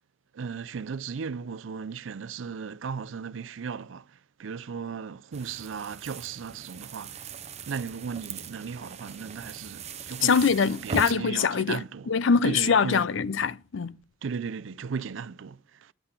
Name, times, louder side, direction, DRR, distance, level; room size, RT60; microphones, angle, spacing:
voice 1, 0.3-7.3 7.7-12.1 12.4-13.0 14.2-15.9, right 6 dB, 75° right, 0.4 m, -36 dB
sound 1, 5.3-11.1, right 5 dB, 35° right, 0.6 m, -39 dB
voice 2, 10.2-14.0, left 5 dB, 70° left, 0.5 m, -24 dB
10.0 x 5.8 x 8.1 m
head